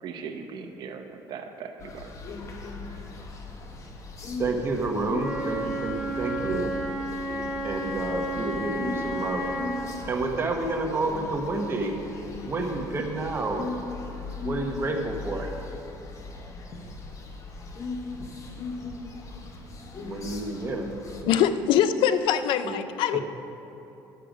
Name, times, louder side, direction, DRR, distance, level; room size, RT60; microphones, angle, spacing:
voice 1, 0.0-2.1, right 6 dB, 60° right, 5 dB, 0.7 m, -39 dB
sound 1, 1.8-21.2, left 3 dB, 40° left, 1.0 m, -38 dB
voice 2, 4.4-6.7 7.6-9.4 10.1-11.9 12.5-13.6 14.4-15.5 19.9-20.8 22.6-22.8, right 2 dB, 30° right, 2 dB, 1.1 m, -29 dB
Wind instrument woodwind instrument, 5.1-9.9, right 1 dB, 5° right, 1.9 m, -32 dB
voice 3, 21.3-23.2, left 9 dB, 80° left, 11 dB, 0.4 m, -23 dB
10.5 x 6.7 x 5.1 m, 2.9 s
cardioid pair, 125°, 8 cm